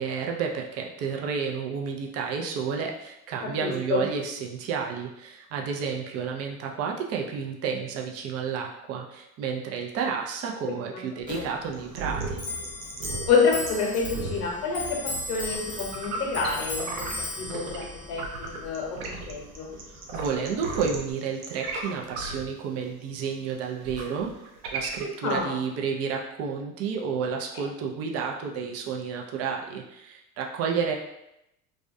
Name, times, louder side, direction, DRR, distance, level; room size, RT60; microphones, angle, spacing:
voice 1, 0.0-12.5 19.9-24.3 24.7-30.9, right 6 dB, 35° right, 1 dB, 0.4 m, -31 dB
voice 2, 3.6-4.0 10.9-11.0 11.3-11.4 13.3-14.8 15.3-17.0 17.4-19.7 25.2-25.6, left 5 dB, 70° left, -1 dB, 0.9 m, -27 dB
Clock, 11.2-21.1, left 2 dB, 15° left, 0.8 m, -37 dB
sound 1, 11.7-17.9 18.1-25.4, right 3 dB, 75° right, 0.7 m, -36 dB
2.4 x 2.1 x 2.5 m, 0.85 s
hypercardioid pair, 95°, 46 cm